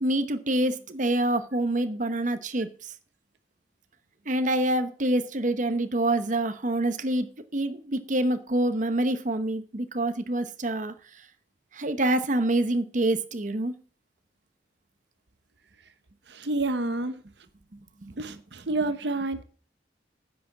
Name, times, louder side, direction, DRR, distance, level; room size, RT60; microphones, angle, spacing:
voice 1, 0.0-2.9 4.3-7.3 7.5-10.9 11.7-13.7 18.0-18.4, right 1 dB, 45° right, 1.0 m, -26 dB
voice 2, 16.3-17.1 18.2-19.4, right 2 dB, 70° right, 0.9 m, -29 dB
10.0 x 6.3 x 7.2 m
head